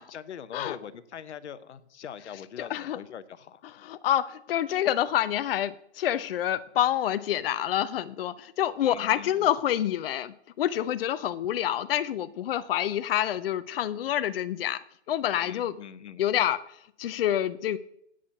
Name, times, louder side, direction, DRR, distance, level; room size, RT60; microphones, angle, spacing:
voice 1, 0.1-3.6 8.8-9.5 15.3-16.2, left 8 dB, 75° left, 13 dB, 0.9 m, -43 dB
voice 2, 2.6-3.0 3.6-15.8 16.2-17.8, left 11 dB, 55° left, 13 dB, 0.5 m, -27 dB
8.5 x 5.0 x 6.9 m, 0.71 s
hypercardioid pair, 145°, 34 cm